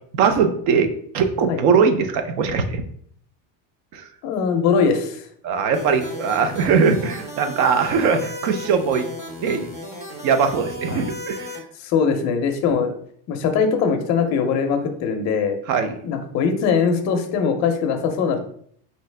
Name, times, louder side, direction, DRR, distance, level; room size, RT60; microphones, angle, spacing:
voice 1, 0.1-2.8 3.9-4.0 5.4-9.1 9.4-9.7 10.2-11.5 15.7-16.0, right 5 dB, 60° right, 7 dB, 0.7 m, -20 dB
voice 2, 4.2-5.2 10.9-11.0 11.8-12.9 13.3-15.6 16.0-18.4, left 6 dB, 35° left, 5 dB, 0.5 m, -21 dB
sound 1, 5.7-11.6, left 1 dB, 15° right, 0.6 m, -35 dB
4.7 x 2.8 x 3.2 m, 0.63 s
cardioid pair, 165°, 49 cm